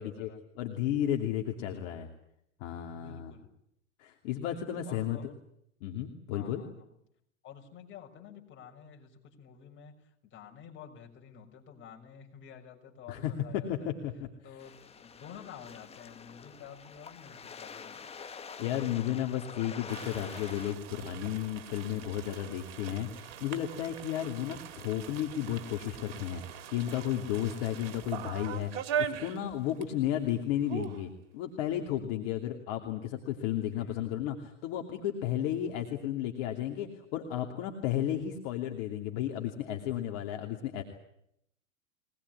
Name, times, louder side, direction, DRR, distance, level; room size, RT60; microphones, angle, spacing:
voice 1, 0.0-0.4 2.9-3.5 4.4-5.4 6.3-6.9 7.4-13.9 14.4-18.1 33.7-34.2, left 8 dB, 30° left, 1 dB, 6.5 m, -50 dB
voice 2, 0.6-2.1 2.6-3.3 4.0-5.3 5.8-6.6 13.1-14.1 18.6-26.4 26.7-40.8, left 11 dB, 50° left, 3 dB, 3.0 m, -33 dB
sound 1, 14.6-20.7, left 6 dB, 15° left, 1.5 m, -46 dB
sound 2, 19.9-30.0 30.2-30.3 30.6-31.0, right 8 dB, 50° right, 2.6 m, -40 dB
23.5 x 19.5 x 9.8 m, 0.76 s
hypercardioid pair, 105°, 38 cm